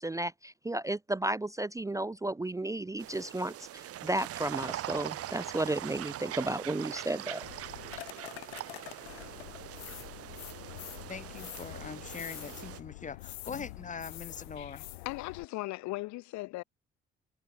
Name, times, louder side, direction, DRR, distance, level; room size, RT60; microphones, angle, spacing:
voice 1, 0.0-7.4, right 1 dB, 10° right, 0.5 m, -33 dB
sound 1, 3.0-12.8, right 13 dB, 50° right, 0.8 m, -42 dB
sound 2, 7.4-15.4, left 18 dB, 85° left, 0.9 m, -46 dB
voice 2, 11.1-14.9, left 6 dB, 25° left, 1.0 m, -42 dB
voice 3, 14.6-16.6, left 20 dB, 70° left, 1.4 m, -38 dB
hypercardioid pair, 50°, 30 cm